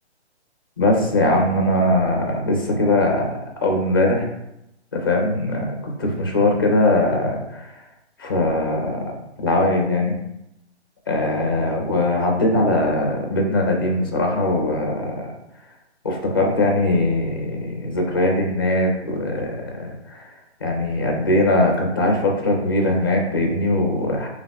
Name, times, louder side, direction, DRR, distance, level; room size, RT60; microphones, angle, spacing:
voice 1, 0.8-3.3 3.6-4.3 4.9-7.8 8.2-10.1 11.1-15.3 16.0-20.3 20.6-24.3, left 1 dB, 20° left, 1 dB, 0.5 m, -21 dB
5.5 x 2.7 x 2.2 m, 0.84 s
hypercardioid pair, 155°, 34 cm